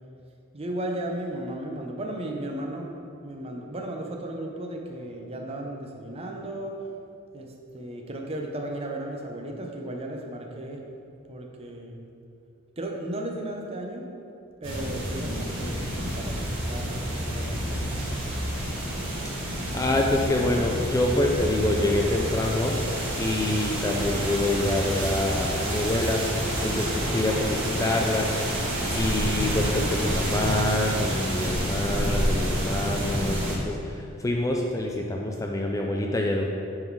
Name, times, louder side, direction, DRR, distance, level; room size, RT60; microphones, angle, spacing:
voice 1, 0.5-2.9 3.2-6.8 7.3-10.8 11.3-12.0 12.8-14.1 14.6-17.9, right 1 dB, 30° right, 1 dB, 0.7 m, -35 dB
sound 1, 14.6-33.6, equal, 60° right, 1.7 m, -28 dB
voice 2, 19.7-22.8 23.2-26.2 26.6-28.4 29.0-36.5, left 1 dB, 15° left, 0 dB, 0.4 m, -26 dB
8.9 x 4.0 x 4.7 m, 2.6 s
head